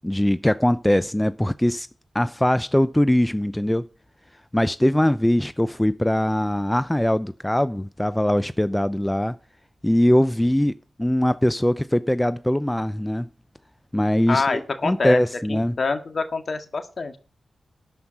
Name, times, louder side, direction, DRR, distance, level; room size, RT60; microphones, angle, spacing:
voice 1, 0.0-1.9 2.1-3.9 4.5-9.4 9.8-10.7 11.0-13.3 13.9-15.8, left 1 dB, 10° left, 0.6 m, -21 dB
voice 2, 14.3-15.2 15.5-17.2, left 4 dB, 60° left, 1.9 m, -25 dB
13.0 x 5.5 x 8.8 m
supercardioid pair, 40°, 0 cm